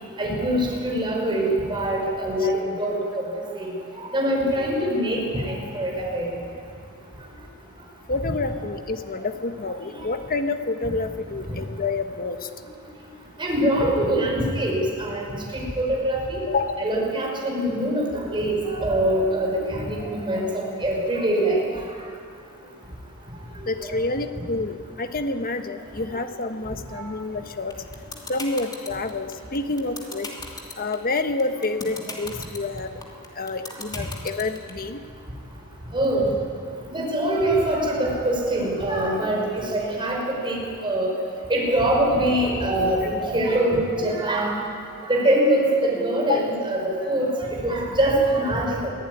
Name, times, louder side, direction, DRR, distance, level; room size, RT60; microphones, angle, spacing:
voice 1, 0.1-3.3 4.1-6.3 11.5-11.6 13.4-15.3 15.5-16.4 16.8-21.6 23.8-23.9 26.9-27.0 29.8-29.9 35.9-36.3 36.9-39.5 39.7-40.2 40.4-41.1 41.5-44.5 45.0-48.9, right 1 dB, 20° right, -2 dB, 5.4 m, -23 dB
voice 2, 8.1-12.5 16.5-16.8 23.7-27.7 28.3-30.3 30.8-33.0 33.3-35.0 46.2-46.4, left 3 dB, 40° left, 7 dB, 1.3 m, -28 dB
sound 1, 27.7-34.7, left 3 dB, 20° left, 2.7 m, -35 dB
23.5 x 15.0 x 9.8 m, 2.3 s
head